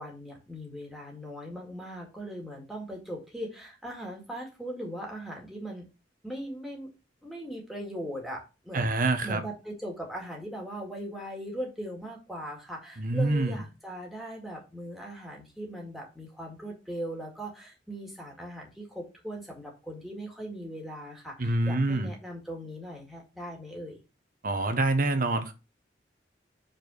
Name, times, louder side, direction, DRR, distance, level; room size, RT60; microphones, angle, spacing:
voice 1, 0.0-5.9 6.2-6.9 7.2-24.0, equal, ahead, 2.0 m, -39 dB
voice 2, 8.7-9.4 13.0-13.6 21.4-22.1 24.4-25.5, right 2 dB, 50° right, 1.0 m, -26 dB
5.2 x 4.3 x 6.2 m
head